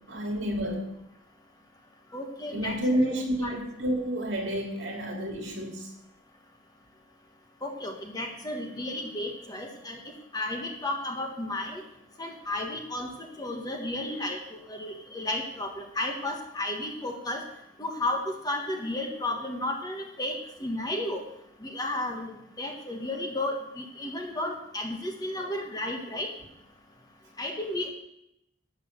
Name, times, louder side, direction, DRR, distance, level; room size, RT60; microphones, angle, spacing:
voice 1, 0.1-0.9 2.5-5.9 25.4-25.5, equal, 65° right, 2 dB, 2.7 m, -30 dB
voice 2, 2.1-2.8 3.4-3.6 7.6-10.0 10.3-11.8 12.2-13.1 13.4-14.4 14.7-17.4 17.8-20.3 20.6-21.2 21.6-22.3 22.6-26.3 27.4-27.9, left 1 dB, 20° left, 2 dB, 1.4 m, -33 dB
12.0 x 7.4 x 6.7 m, 0.81 s
head